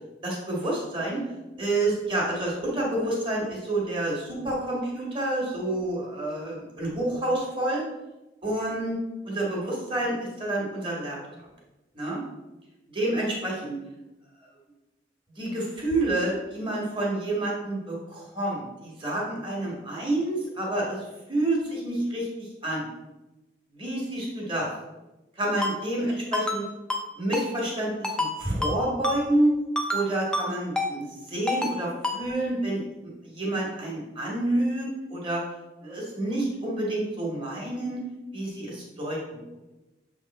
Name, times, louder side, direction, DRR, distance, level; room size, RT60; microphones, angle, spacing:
voice 1, 0.2-1.2 1.6-7.8 8.4-9.0 9.2-11.2 11.9-12.2 12.9-13.7 15.4-21.0 21.3-22.9 23.8-24.7 25.4-26.6 27.2-29.5 29.9-32.8 33.2-35.4 35.8-38.0 38.3-39.4, right 1 dB, 25° right, -3 dB, 1.7 m, -28 dB
Ringtone, 25.6-25.7 26.3-26.6 26.9-27.0 27.3-27.5 28.0-28.3 28.6-28.7 29.0-29.2 29.8-30.0 30.3-30.5 30.8-30.9 31.5-31.7 32.0-32.2, left 2 dB, 5° left, 0.5 m, -27 dB
6.9 x 3.6 x 4.1 m, 1.0 s
head